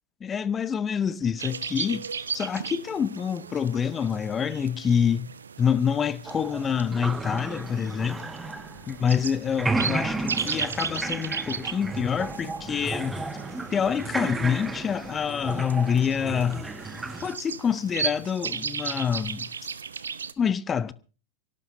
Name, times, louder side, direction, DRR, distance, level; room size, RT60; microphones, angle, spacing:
voice 1, 0.2-2.1 2.3-5.3 5.6-8.3 8.9-13.2 13.7-16.7 17.2-19.5 20.4-20.9, left 7 dB, 20° left, 0.8 m, -26 dB
sound 1, 1.4-20.3, right 6 dB, 70° right, 0.8 m, -36 dB
sound 2, 6.3-9.2 9.5-17.4, right 2 dB, 10° right, 1.3 m, -33 dB
24.5 x 17.5 x 2.6 m
figure-of-eight pair, 90°, 0 cm